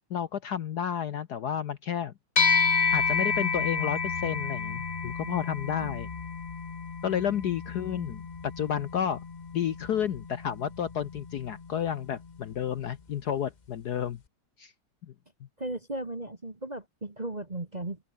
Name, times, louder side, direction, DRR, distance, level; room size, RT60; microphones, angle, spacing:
voice 1, 0.1-2.1 2.9-6.1 7.0-8.2 8.6-9.2 9.5-14.2 14.6-14.7, left 9 dB, 60° left, 1.1 m, -31 dB
sound 1, 2.4-12.0, left 5 dB, 35° left, 0.7 m, -30 dB
voice 2, 15.6-18.0, right 2 dB, 20° right, 1.8 m, -36 dB
open air
omnidirectional pair, 2.4 m